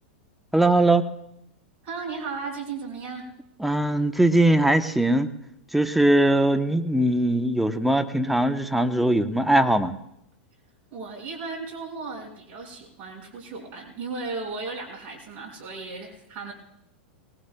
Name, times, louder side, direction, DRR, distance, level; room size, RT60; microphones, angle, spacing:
voice 1, 0.5-1.1 3.6-5.3 5.7-9.9, right 1 dB, ahead, 9 dB, 0.8 m, -21 dB
voice 2, 1.8-3.2 10.9-16.5, right 4 dB, 35° right, -1 dB, 5.1 m, -35 dB
24.0 x 19.0 x 2.2 m, 0.78 s
hypercardioid pair, 120°, 6 cm